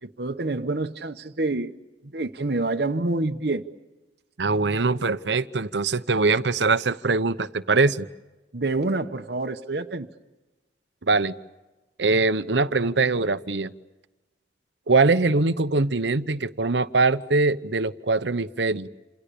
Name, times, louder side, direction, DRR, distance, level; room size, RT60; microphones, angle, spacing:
voice 1, 0.0-1.7 2.0-3.6 8.5-10.1, right 2 dB, 65° right, 1.1 m, -27 dB
voice 2, 4.4-8.1 11.1-11.3 12.0-13.7 14.9-18.9, right 3 dB, 85° right, 1.0 m, -22 dB
28.5 x 28.0 x 6.9 m
head